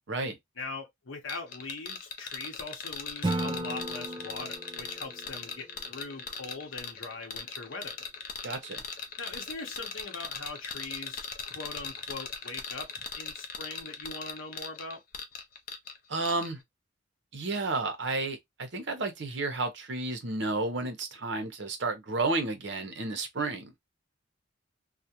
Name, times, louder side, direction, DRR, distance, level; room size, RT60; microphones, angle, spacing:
voice 1, 0.6-8.0 9.2-15.0, left 3 dB, 70° left, 0.8 m, -41 dB
sound 1, 1.3-16.0 16.2-16.5, left 5 dB, 40° left, 0.5 m, -39 dB
Acoustic guitar / Strum, 3.2-6.4, right 1 dB, 20° right, 0.3 m, -36 dB
voice 2, 8.4-8.8 16.1-16.6 17.3-23.7, right 3 dB, 55° right, 0.7 m, -32 dB
2.3 x 2.1 x 2.7 m
head